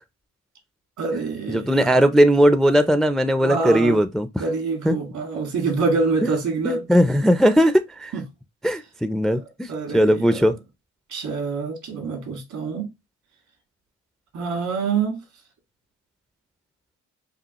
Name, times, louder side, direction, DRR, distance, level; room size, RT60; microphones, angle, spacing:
voice 1, 1.0-2.0 3.4-4.0 4.4-6.8 8.1-8.2 9.3-9.4 9.7-10.5 11.1-12.9 14.3-15.2, right 4 dB, 70° right, 1.9 m, -26 dB
voice 2, 1.5-4.3 4.9-5.0 6.2-6.3 6.6-8.1 8.6-10.5, equal, ahead, 0.4 m, -18 dB
5.4 x 2.4 x 2.9 m
cardioid pair, 90°, 30 cm